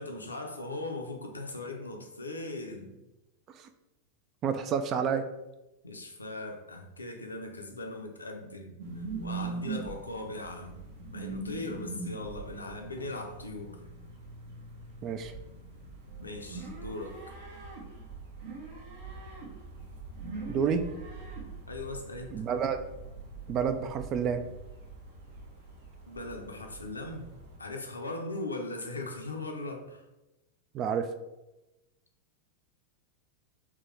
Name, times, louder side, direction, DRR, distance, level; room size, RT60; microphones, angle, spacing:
voice 1, 0.0-3.0 5.8-10.8 11.1-13.8 16.2-17.2 21.7-22.4 26.1-27.3 27.6-30.0, left 2 dB, 80° left, 3 dB, 0.6 m, -39 dB
voice 2, 4.4-5.3 15.0-15.3 20.5-20.8 22.3-22.8 23.5-24.4 30.7-31.1, right 7 dB, 35° right, 9 dB, 0.3 m, -29 dB
sound 1, 8.8-27.6, right 3 dB, 60° right, 1.0 m, -42 dB
3.7 x 2.9 x 3.2 m, 0.97 s
figure-of-eight pair, 90°, 0 cm